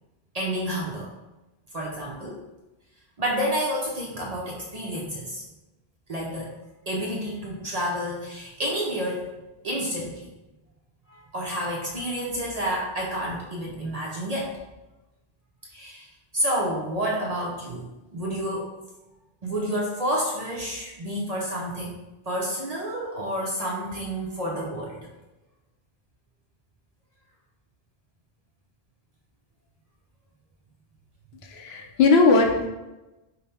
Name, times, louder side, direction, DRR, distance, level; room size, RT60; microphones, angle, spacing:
voice 1, 0.3-1.1 1.7-2.4 3.2-5.4 6.1-6.5 6.9-9.3 9.6-10.3 11.1-14.6 15.7-16.1 16.3-18.7 19.4-21.9 22.3-25.1, equal, 45° right, -3 dB, 0.6 m, -29 dB
voice 2, 31.4-32.7, left 3 dB, 80° left, 3 dB, 0.8 m, -19 dB
5.2 x 2.1 x 2.7 m, 1.0 s
omnidirectional pair, 1.1 m